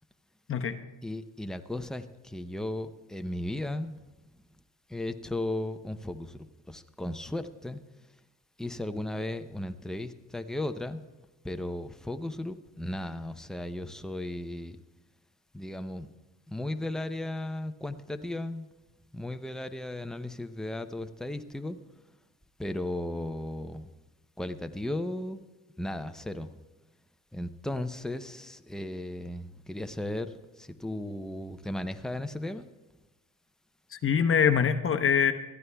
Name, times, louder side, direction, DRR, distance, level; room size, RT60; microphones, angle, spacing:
voice 1, 1.0-3.9 4.9-7.8 8.6-11.0 11.4-14.8 15.5-16.1 16.5-18.7 19.1-21.8 22.6-23.9 24.4-25.4 25.8-26.5 27.3-30.3 30.6-32.7, left 1 dB, ahead, 8 dB, 0.6 m, -35 dB
voice 2, 33.9-35.3, left 7 dB, 45° left, 8 dB, 0.9 m, -24 dB
20.5 x 14.0 x 2.3 m, 1.1 s
cardioid pair, 90°, 30 cm